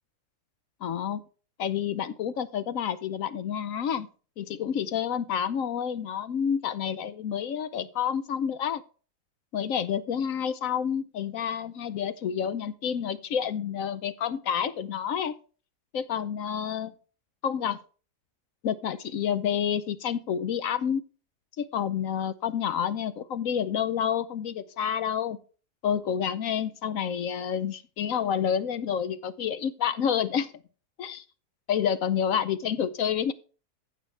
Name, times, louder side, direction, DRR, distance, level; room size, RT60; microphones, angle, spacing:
voice 1, 0.8-1.2 1.6-4.1 4.4-8.8 9.5-15.3 15.9-16.9 17.4-17.8 18.6-21.0 21.6-25.4 25.8-30.5 31.0-31.2 31.7-33.3, left 8 dB, 65° left, 14 dB, 1.0 m, -29 dB
15.0 x 5.7 x 3.2 m, 0.37 s
omnidirectional pair, 1.6 m